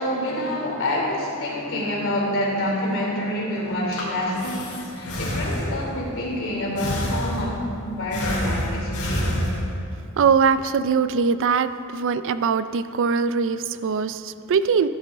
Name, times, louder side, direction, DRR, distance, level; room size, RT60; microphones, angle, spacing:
voice 1, 0.0-4.7 4.9-7.5 7.8-9.6, left 1 dB, 60° left, -3 dB, 3.1 m, -27 dB
Breathing, 3.7-6.0 6.8-7.7 8.1-9.9, equal, 85° left, 3.5 m, -28 dB
voice 2, 10.2-14.9, right 6 dB, 60° right, 13 dB, 0.4 m, -22 dB
14.0 x 11.5 x 3.7 m, 2.4 s
head